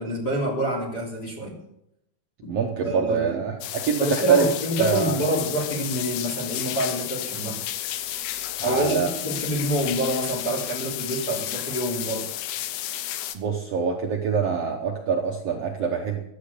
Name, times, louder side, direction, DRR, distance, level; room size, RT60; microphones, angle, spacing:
voice 1, 0.0-1.6 2.4-2.5 2.8-3.4 4.0-7.6 8.6-12.3, right 1 dB, 25° left, -1 dB, 3.5 m, -27 dB
voice 2, 2.5-4.5 4.8-5.2 8.6-9.1 13.3-16.2, right 6 dB, 85° right, 1 dB, 1.4 m, -24 dB
sound 1, 3.6-13.4, left 13 dB, 85° left, 2.9 m, -32 dB
12.0 x 8.5 x 8.3 m, 0.81 s
omnidirectional pair, 4.5 m